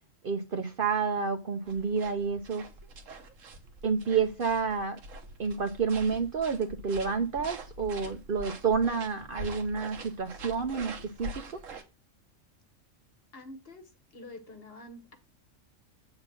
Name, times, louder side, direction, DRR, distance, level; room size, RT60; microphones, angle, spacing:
voice 1, 0.2-2.6 3.8-5.0 5.4-10.9 11.2-11.6, right 5 dB, 50° right, 7 dB, 0.8 m, -29 dB
sound 1, 1.7-11.8, right 2 dB, 80° right, 1.4 m, -44 dB
voice 2, 13.3-13.9 14.1-15.2, left 1 dB, 50° left, 6 dB, 1.3 m, -46 dB
7.8 x 3.9 x 5.9 m, 0.30 s
omnidirectional pair, 1.3 m